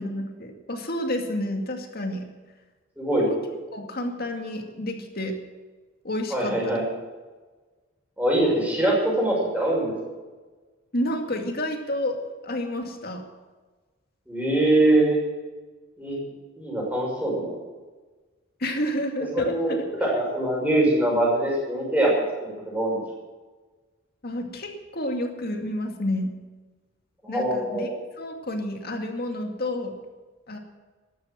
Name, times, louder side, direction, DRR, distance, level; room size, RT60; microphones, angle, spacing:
voice 1, 0.0-2.3 3.2-3.4 3.7-5.4 6.0-6.8 10.9-12.2 12.4-13.2 18.6-19.9 24.2-26.3 27.3-27.9 28.2-29.9 30.5-30.6, left 1 dB, 50° left, 4 dB, 2.3 m, -30 dB
voice 2, 3.0-3.3 6.3-6.9 8.2-9.9 14.3-15.2 16.0-16.2 16.6-17.5 19.3-23.0 27.2-27.9, right 1 dB, 5° right, -3 dB, 6.2 m, -23 dB
13.5 x 12.0 x 7.7 m, 1.3 s
head